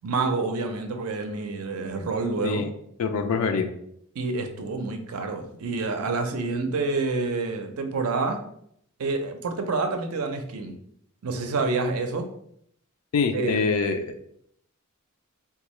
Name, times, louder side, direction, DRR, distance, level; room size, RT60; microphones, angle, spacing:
voice 1, 0.0-2.7 4.2-8.4 9.0-10.8 11.2-12.3 13.3-13.7, right 3 dB, 85° right, 6 dB, 0.5 m, -28 dB
voice 2, 3.0-3.7 13.1-14.1, left 5 dB, 80° left, 6 dB, 0.4 m, -25 dB
3.5 x 2.3 x 3.0 m, 0.69 s
head